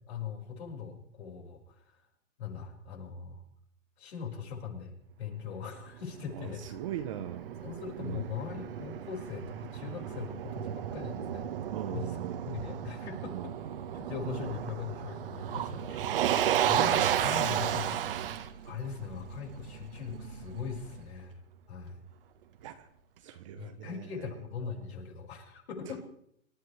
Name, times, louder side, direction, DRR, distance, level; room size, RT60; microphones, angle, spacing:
voice 1, 0.1-2.1 2.4-3.4 4.0-6.6 7.6-11.5 11.9-13.5 13.9-16.4 16.7-18.0 18.6-21.3 21.7-22.0 23.6-26.0, left 6 dB, 50° left, 1 dB, 5.2 m, -40 dB
Motor vehicle (road), 5.9-21.0, right 10 dB, 45° right, 1.3 m, -33 dB
voice 2, 6.3-7.7 8.0-8.3 11.7-12.6 13.3-13.5 22.6-22.9 23.2-24.2, right 11 dB, 25° right, 7 dB, 0.8 m, -40 dB
27.0 x 13.5 x 3.3 m, 0.71 s
hypercardioid pair, 155°, 40 cm